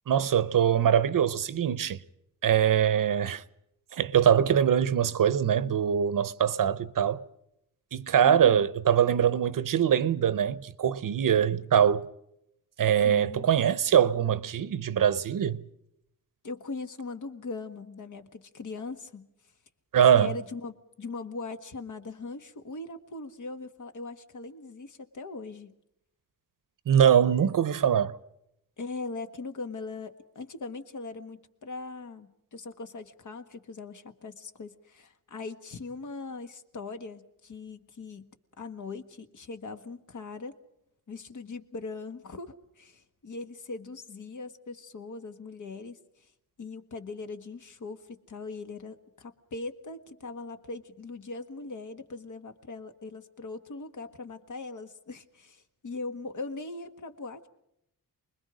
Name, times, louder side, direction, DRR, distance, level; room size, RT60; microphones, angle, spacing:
voice 1, 0.1-2.0 2.4-3.4 3.9-7.2 7.9-12.1 12.8-15.6 19.9-20.3 26.9-28.2, right 9 dB, 65° right, 0.9 m, -23 dB
voice 2, 8.2-8.7 13.0-13.5 16.4-19.3 20.1-25.7 28.8-38.3 38.6-40.5 41.1-46.0 46.6-57.5, left 3 dB, 55° left, 1.6 m, -40 dB
28.5 x 21.0 x 5.0 m
wide cardioid pair, 170°, 35 cm